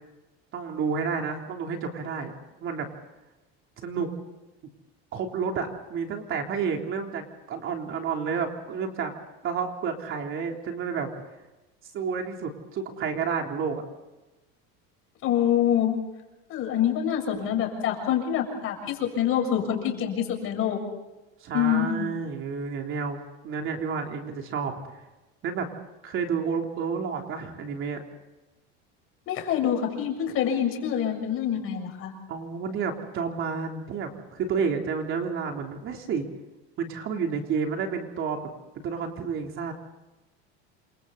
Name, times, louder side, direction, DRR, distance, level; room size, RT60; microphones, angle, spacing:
voice 1, 0.5-2.3 2.6-2.9 3.8-4.1 5.1-9.1 9.4-11.1 11.9-13.8 21.4-23.2 23.4-25.0 25.4-25.7 26.0-28.0 32.3-36.3 36.8-38.4 38.8-39.7, right 6 dB, 40° right, 3 dB, 3.4 m, -30 dB
voice 2, 15.2-15.9 16.5-20.8 21.5-22.0 29.3-32.1, left 9 dB, 45° left, 3 dB, 6.8 m, -26 dB
28.5 x 26.0 x 4.1 m, 1.0 s
cardioid pair, 145°, 30 cm